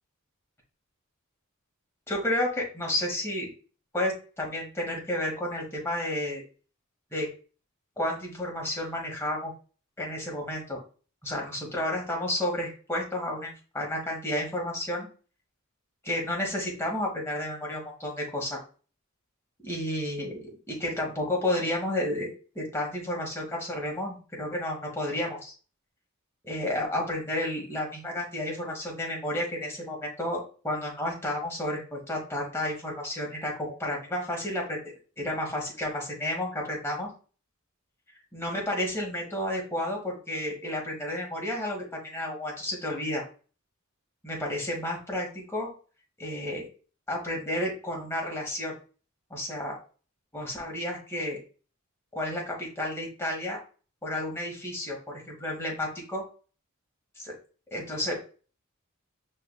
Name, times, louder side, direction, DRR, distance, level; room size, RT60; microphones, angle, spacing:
voice 1, 2.1-3.5 3.9-6.4 7.1-7.3 8.0-9.5 10.0-10.8 11.2-15.1 16.0-18.6 19.6-25.5 26.4-37.1 38.3-43.2 44.2-45.7 46.2-46.6 47.1-48.7 49.3-49.8 50.3-51.4 52.1-53.6 54.0-56.2 57.2-57.3 57.7-58.2, left 1 dB, 10° left, -2 dB, 1.3 m, -31 dB
5.5 x 3.2 x 2.2 m, 0.37 s
head